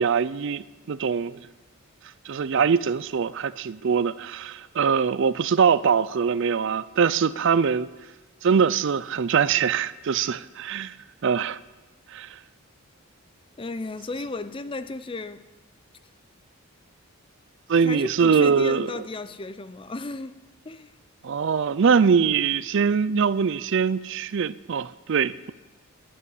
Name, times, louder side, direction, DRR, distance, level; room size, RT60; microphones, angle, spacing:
voice 1, 0.0-1.5 2.3-7.9 8.4-10.9 11.2-11.6 12.1-12.4 17.7-19.0 21.2-25.5, right 6 dB, 55° right, 0.4 m, -23 dB
voice 2, 13.6-15.4 17.8-20.4 20.6-20.9, left 2 dB, 25° left, 0.5 m, -34 dB
11.0 x 10.0 x 9.5 m
head